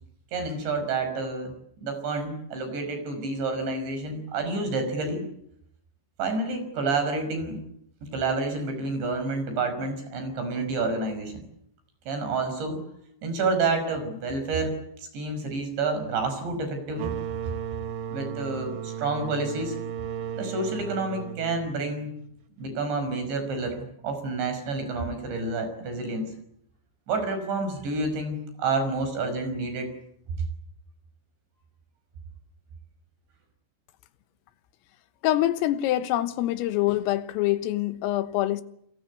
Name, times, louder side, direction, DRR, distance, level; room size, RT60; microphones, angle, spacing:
voice 1, 0.3-1.5 1.8-5.3 6.2-7.6 8.0-11.3 12.1-12.8 13.2-14.7 15.0-17.1 18.1-19.8 20.4-22.1 22.6-26.3 27.1-29.9 30.4-30.5, right 3 dB, 60° right, 7.7 m, -29 dB
sound 1, 16.9-22.4, right 8 dB, 80° right, 2.0 m, -35 dB
voice 2, 35.2-38.6, left 14 dB, 90° left, 3.9 m, -25 dB
29.0 x 23.0 x 8.4 m
omnidirectional pair, 5.8 m